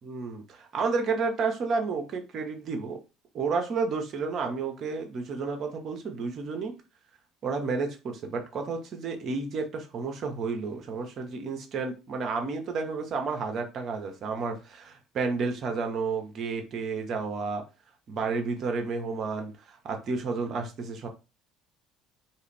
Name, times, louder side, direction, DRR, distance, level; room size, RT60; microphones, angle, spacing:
voice 1, 0.0-3.0 3.3-6.7 7.4-17.6 18.1-21.1, right 4 dB, 50° right, 0.7 m, -31 dB
2.5 x 2.4 x 3.3 m
figure-of-eight pair, 60°, 0 cm